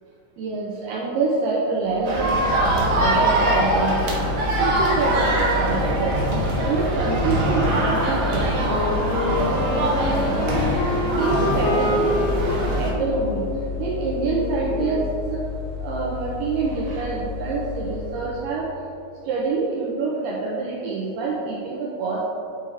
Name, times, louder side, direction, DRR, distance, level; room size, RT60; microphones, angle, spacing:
voice 1, 0.4-2.4 3.0-6.3 6.6-12.1 12.5-13.5 13.8-15.0 15.3-15.4 15.8-18.7 19.2-22.2, right 3 dB, 85° right, -5 dB, 2.3 m, -26 dB
Mechanical fan, 1.8-18.7, left 5 dB, 60° left, 3.2 m, -32 dB
sound 1, 2.0-12.9, right 1 dB, 65° right, 2.1 m, -23 dB
Wind instrument woodwind instrument, 8.7-15.2, left 3 dB, 85° left, 2.4 m, -28 dB
10.0 x 4.7 x 3.4 m, 2.8 s
omnidirectional pair, 5.4 m